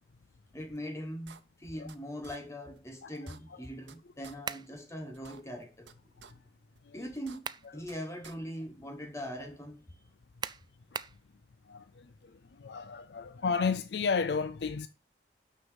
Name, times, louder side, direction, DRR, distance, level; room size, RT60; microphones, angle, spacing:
voice 1, 0.5-5.9 6.3-6.4 6.9-9.8, equal, 15° left, 1.2 m, -41 dB
sound 1, 0.7-0.8 1.2-2.0 2.2-2.4 2.7-2.8 3.1-3.9 4.2-4.3 4.7-4.8 5.1-5.9 6.2-6.3 6.7-6.8 7.1-7.9 8.2-8.3, right 6 dB, 85° right, 0.9 m, -52 dB
voice 2, 3.0-3.6 6.2-6.3 6.8-7.1 10.9-11.0 11.7-14.9, left 5 dB, 65° left, 0.5 m, -33 dB
sound 2, 4.4-4.7 7.1-7.7 8.2-8.3 10.4-11.2, right 6 dB, 25° right, 0.3 m, -39 dB
6.4 x 6.3 x 7.2 m
head